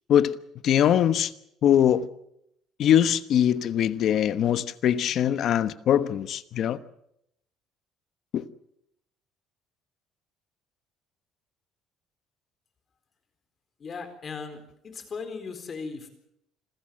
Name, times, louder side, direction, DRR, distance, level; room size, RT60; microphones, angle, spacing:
voice 1, 0.6-1.3 1.6-2.1 2.8-6.8 8.3-8.4, left 10 dB, 55° left, 1.1 m, -22 dB
voice 2, 13.8-16.1, left 5 dB, 35° left, 4.1 m, -37 dB
27.0 x 15.5 x 7.7 m
cardioid pair, 125°, 0 cm